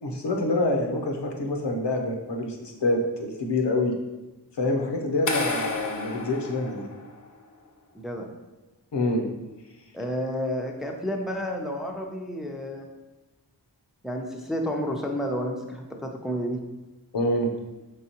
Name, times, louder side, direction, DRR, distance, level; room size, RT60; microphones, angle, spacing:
voice 1, 0.0-3.9 4.6-6.9 8.9-9.2 17.1-17.5, left 2 dB, 85° left, 2 dB, 0.7 m, -26 dB
sound 1, 5.3-7.4, left 3 dB, 50° left, 0.6 m, -31 dB
voice 2, 7.9-8.3 9.9-12.9 14.0-16.6, equal, ahead, 1 dB, 0.4 m, -30 dB
4.8 x 3.3 x 2.8 m, 1.1 s
wide cardioid pair, 65°, 41 cm